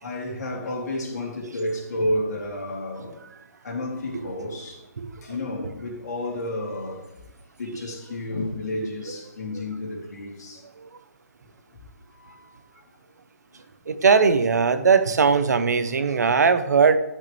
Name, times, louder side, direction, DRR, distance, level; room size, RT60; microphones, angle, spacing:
voice 1, 0.0-3.2 3.6-4.8 5.2-7.2 7.6-10.6 12.2-12.6, left 1 dB, 80° left, 3.3 m, -31 dB
voice 2, 13.9-17.0, right 5 dB, 85° right, 1.0 m, -19 dB
12.0 x 6.5 x 3.4 m
hypercardioid pair, 175°, 9 cm